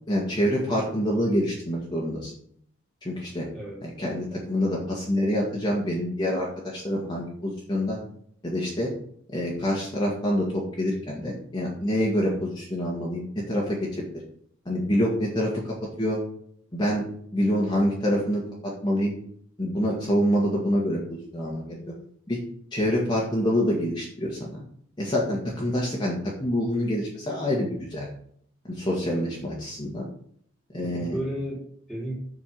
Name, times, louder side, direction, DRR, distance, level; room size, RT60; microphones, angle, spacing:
voice 1, 0.1-2.3 3.0-3.5 3.8-8.0 8.4-8.9 9.3-14.0 14.7-15.5 16.0-16.2 16.7-17.1 17.3-18.4 18.8-19.1 19.6-21.8 22.3-22.4 22.7-24.6 25.0-28.1 28.7-30.0 30.7-31.1, equal, 25° left, -4 dB, 2.0 m, -26 dB
voice 2, 29.0-29.7 30.8-32.1, equal, ahead, -3 dB, 3.2 m, -35 dB
7.4 x 6.0 x 6.3 m, 0.63 s
head